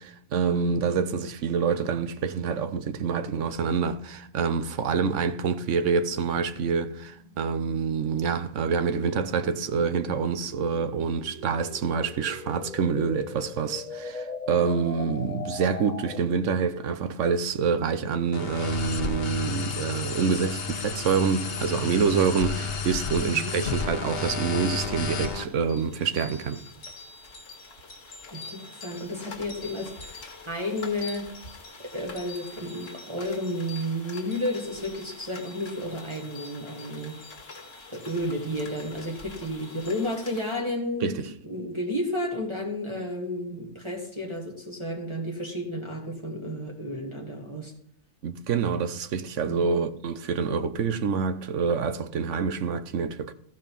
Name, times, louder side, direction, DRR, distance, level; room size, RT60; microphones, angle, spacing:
voice 1, 0.0-26.6 41.0-41.2 48.2-53.3, right 6 dB, 70° right, 1.1 m, -27 dB
voice 2, 0.6-1.0 23.2-23.6 28.3-31.3 31.8-37.2 37.9-47.7 49.4-49.8, left 1 dB, 20° right, 1.7 m, -32 dB
sound 1, 6.1-16.5, left 3 dB, 35° left, 1.3 m, -41 dB
sound 2, 18.3-25.4, left 5 dB, 50° left, 1.2 m, -31 dB
sound 3, 24.1-40.5, left 3 dB, 70° left, 1.9 m, -45 dB
15.0 x 5.3 x 5.3 m
omnidirectional pair, 1.3 m